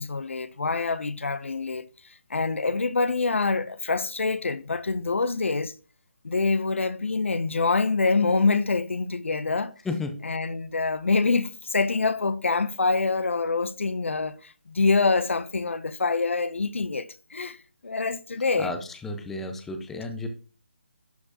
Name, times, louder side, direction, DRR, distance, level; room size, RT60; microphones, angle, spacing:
voice 1, 0.0-1.9 2.3-5.7 6.2-9.7 10.2-17.6 17.8-18.7, left 4 dB, 85° left, 0.7 m, -25 dB
voice 2, 9.8-10.2 18.6-20.3, left 3 dB, 5° left, 0.5 m, -32 dB
11.5 x 4.3 x 2.9 m
hypercardioid pair, 165°, 7 cm